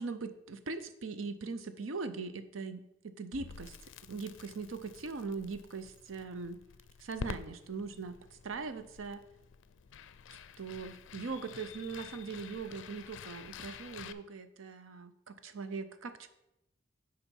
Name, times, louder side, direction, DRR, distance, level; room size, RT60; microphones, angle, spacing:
voice 1, 0.0-3.7 4.1-6.6 7.0-9.2 10.6-16.3, right 4 dB, 85° right, 11 dB, 0.6 m, -41 dB
Crackle, 3.3-14.1, left 6 dB, 70° left, 0.4 m, -49 dB
7.2 x 5.0 x 5.4 m, 0.88 s
head